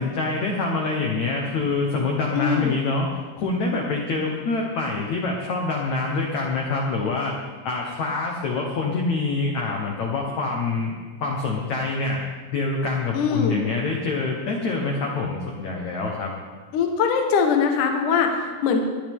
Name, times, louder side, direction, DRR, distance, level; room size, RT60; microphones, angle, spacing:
voice 1, 0.0-3.1 3.4-7.4 7.6-10.9 11.2-12.2 12.5-16.3, left 3 dB, 80° left, 0 dB, 1.6 m, -25 dB
voice 2, 2.3-2.8 13.1-13.6 16.7-18.8, left 6 dB, 65° left, 3 dB, 2.2 m, -22 dB
20.5 x 11.0 x 3.7 m, 1.4 s
omnidirectional pair, 5.1 m